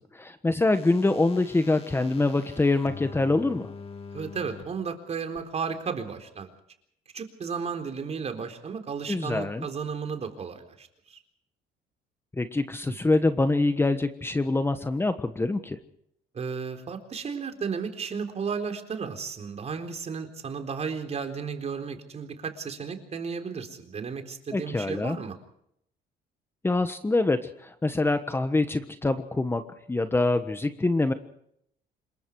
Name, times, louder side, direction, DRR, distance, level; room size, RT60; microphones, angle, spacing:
voice 1, 0.0-3.7 9.1-9.7 12.4-15.8 24.5-25.2 26.6-29.6 29.9-31.1, left 2 dB, 15° left, 9 dB, 1.3 m, -25 dB
sound 1, 0.7-4.6 5.4-5.5, left 5 dB, 35° left, 3.0 m, -44 dB
voice 2, 4.1-6.5 7.1-11.2 16.3-25.4, right 6 dB, 40° right, 6 dB, 4.0 m, -34 dB
27.0 x 22.0 x 4.8 m, 0.72 s
cardioid pair, 110°, 17 cm